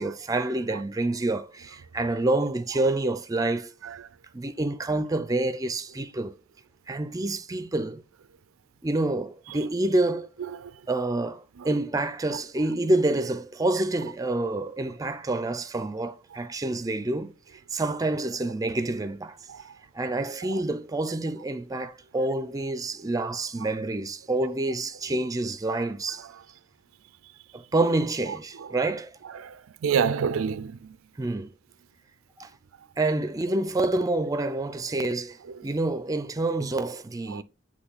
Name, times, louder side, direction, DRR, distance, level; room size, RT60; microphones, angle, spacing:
voice 1, 0.0-3.7 4.3-6.3 6.9-8.0 8.8-10.3 10.9-17.3 17.7-19.4 19.9-26.3 27.5-29.1 31.2-31.5 32.4-32.5 33.0-35.4 35.6-37.4, right 2 dB, 20° right, 0.4 m, -27 dB
voice 2, 29.3-30.8 37.3-37.4, right 7 dB, 85° right, 0.4 m, -27 dB
7.9 x 3.1 x 4.0 m
head